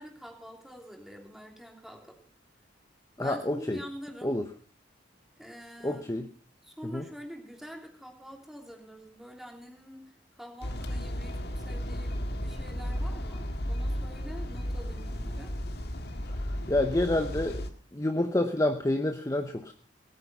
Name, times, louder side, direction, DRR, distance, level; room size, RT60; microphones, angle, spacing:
voice 1, 0.0-2.2 3.2-4.3 5.4-6.2 6.6-15.5, equal, ahead, 2 dB, 3.0 m, -46 dB
voice 2, 3.2-3.8 4.2-4.4 5.8-6.3 6.9-7.0 16.3-16.4 16.7-17.6 17.9-19.7, left 1 dB, 20° left, 6 dB, 0.9 m, -28 dB
sound 1, 10.6-17.7, equal, 60° left, 1.7 m, -34 dB
18.0 x 9.4 x 5.5 m, 0.43 s
head